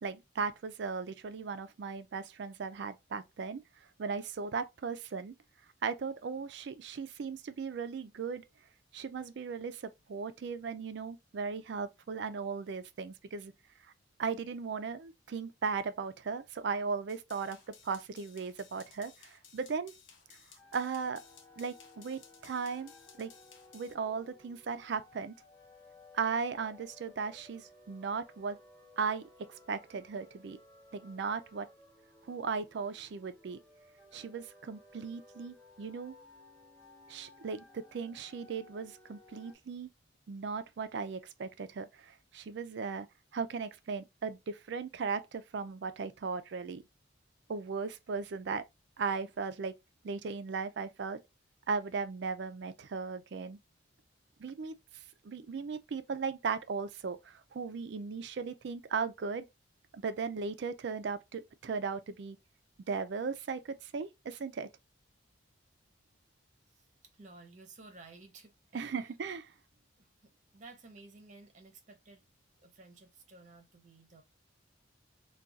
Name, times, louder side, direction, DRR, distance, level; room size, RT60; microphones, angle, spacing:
voice 1, 0.0-3.6 4.0-5.3 5.8-8.4 8.9-13.5 14.2-17.6 17.8-19.9 20.7-21.2 21.6-22.9 23.2-23.3 23.7-25.3 26.1-28.6 29.0-29.3 29.7-30.6 30.9-31.7 32.3-33.6 34.1-36.1 37.1-39.9 40.3-43.1 43.3-46.8 47.5-48.6 49.0-49.8 50.0-51.2 51.7-53.6 54.4-54.7 55.2-59.5 59.9-62.4 62.9-64.7 68.7-69.5, right 5 dB, 55° right, 0.4 m, -37 dB
sound 1, 17.1-23.9, left 6 dB, 70° left, 0.7 m, -58 dB
sound 2, 20.6-39.6, left 2 dB, 5° left, 0.6 m, -59 dB
voice 2, 66.7-69.1 70.0-72.2 72.6-74.2, right 3 dB, 35° right, 0.7 m, -55 dB
2.4 x 2.3 x 3.8 m
head